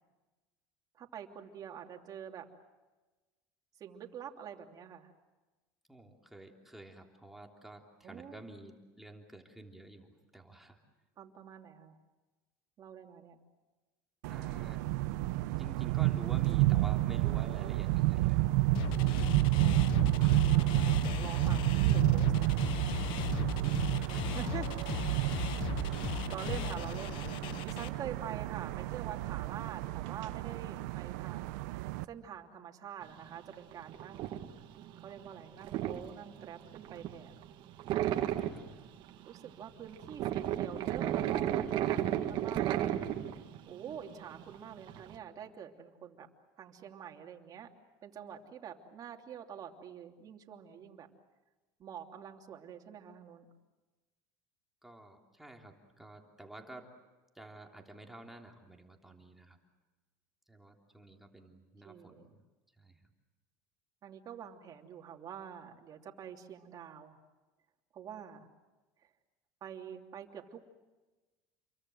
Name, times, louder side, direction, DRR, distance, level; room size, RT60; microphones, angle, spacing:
voice 1, 0.9-2.4 3.8-5.1 8.0-8.4 11.2-12.0 12.8-13.4 19.5-22.7 24.3-24.8 25.6-25.7 26.3-31.7 32.1-34.5 35.0-37.4 38.0-38.8 39.3-42.9 43.7-46.3 46.6-47.7 48.0-51.1 51.8-53.5 61.8-62.3 64.0-67.2 67.9-68.5 69.0-69.1 69.6-70.7, right 8 dB, 45° right, 2 dB, 3.0 m, -46 dB
voice 2, 5.9-10.8 14.3-14.8 15.6-18.5 19.0-19.5 23.3-24.4 24.6-24.7 25.0-25.4 25.8-26.3 37.9-38.6 54.8-56.9 57.3-59.6 60.5-62.4 62.8-62.9, right 1 dB, 5° right, 1 dB, 3.3 m, -51 dB
sound 1, 14.2-32.0, right 18 dB, 85° right, 0.8 m, -30 dB
sound 2, 18.7-27.9, left 11 dB, 65° left, 1.1 m, -38 dB
sound 3, 33.0-45.2, right 11 dB, 60° right, 2.0 m, -34 dB
29.0 x 23.5 x 7.8 m, 1.2 s
supercardioid pair, 120°, 9 cm